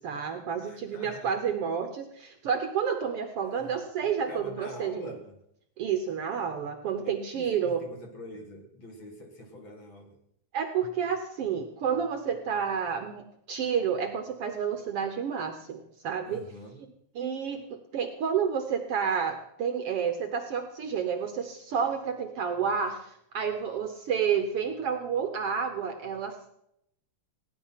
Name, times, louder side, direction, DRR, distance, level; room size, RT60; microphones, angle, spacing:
voice 1, 0.0-5.1 5.8-7.8 10.5-16.4 17.1-26.5, right 7 dB, 65° right, 7 dB, 1.6 m, -30 dB
voice 2, 0.6-1.3 3.5-3.8 4.3-5.4 7.0-10.1 16.2-16.8, left 1 dB, 45° left, 3 dB, 2.4 m, -45 dB
17.5 x 10.0 x 5.7 m, 0.75 s
omnidirectional pair, 3.4 m